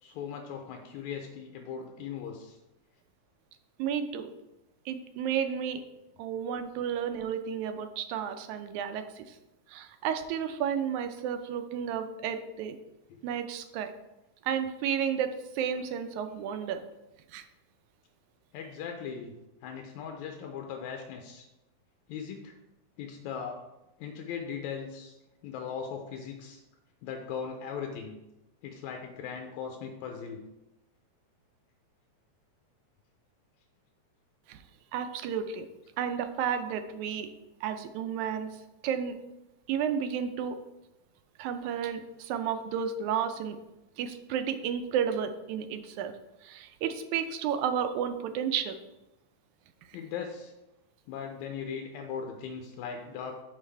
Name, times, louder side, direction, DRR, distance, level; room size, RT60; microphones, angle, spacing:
voice 1, 0.0-2.6 13.1-13.2 18.5-19.3 19.6-21.5 22.1-22.5 23.0-23.6 24.0-25.2 25.4-26.6 27.0-28.2 28.6-30.4 49.9-50.5 51.1-53.4, left 7 dB, 85° left, 3 dB, 1.9 m, -39 dB
voice 2, 3.8-4.3 4.9-5.8 6.2-9.4 9.7-12.8 13.2-13.9 14.4-16.8 17.3-17.4 34.5-34.6 34.9-35.7 36.0-37.3 37.6-38.5 38.8-39.2 39.7-40.6 41.4-43.6 44.0-46.1 46.4-48.8, right 8 dB, 80° right, 8 dB, 1.9 m, -32 dB
7.3 x 5.6 x 3.3 m, 0.94 s
omnidirectional pair, 3.4 m